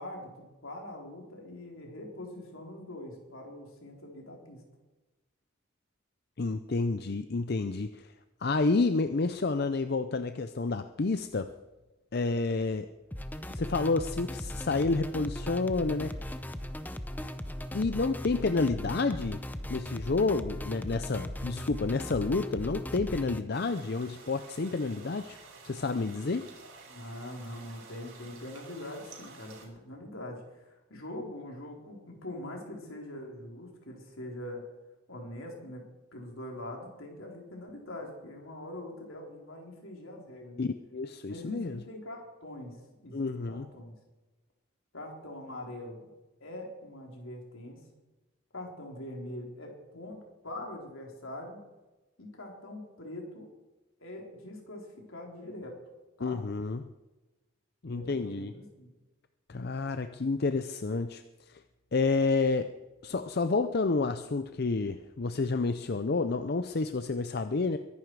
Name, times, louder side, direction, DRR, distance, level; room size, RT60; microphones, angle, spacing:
voice 1, 0.0-4.6 26.9-34.6 35.1-35.8 36.1-40.6 41.3-43.9 44.9-46.1 46.4-47.8 48.5-51.6 52.2-53.5 54.0-55.8 56.2-56.4 57.9-59.0, left 1 dB, 75° left, 0 dB, 4.0 m, -43 dB
voice 2, 6.4-8.1 8.4-11.5 12.1-12.9 13.5-16.1 17.7-19.4 19.7-25.4 25.6-26.5 40.6-41.8 43.1-43.7 56.2-56.9 57.8-58.5 59.5-61.2 61.9-62.7 63.0-67.8, left 3 dB, 50° left, 9 dB, 0.5 m, -29 dB
sound 1, 13.1-23.4, left 1 dB, 10° left, 0.6 m, -38 dB
sound 2, 23.5-29.6, right 4 dB, 85° right, 5.2 m, -51 dB
22.5 x 11.0 x 4.8 m, 1.1 s
head